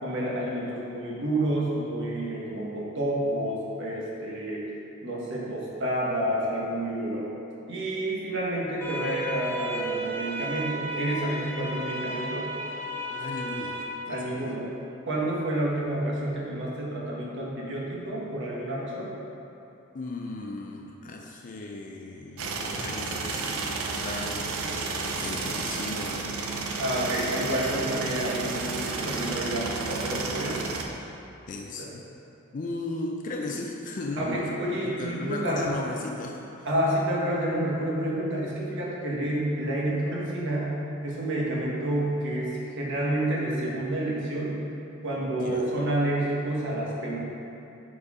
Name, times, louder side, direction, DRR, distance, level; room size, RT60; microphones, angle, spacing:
voice 1, 0.0-4.6 5.0-7.3 7.7-12.5 14.1-14.7 15.1-19.1 26.8-30.6 31.8-31.9 34.2-35.7 36.6-44.6 45.0-47.2, right 1 dB, 60° right, -4 dB, 1.4 m, -29 dB
sound 1, 8.8-13.8, right 1 dB, 10° left, 0.9 m, -33 dB
voice 2, 13.1-13.8 14.0-14.5 19.9-24.9 25.2-26.4 26.9-27.3 31.5-32.1 32.5-34.6 34.9-36.7 45.3-45.7, left 2 dB, 40° left, 0 dB, 0.4 m, -36 dB
sound 2, 22.4-30.9, right 4 dB, 90° right, 0.6 m, -32 dB
6.6 x 4.4 x 4.9 m, 2.8 s
head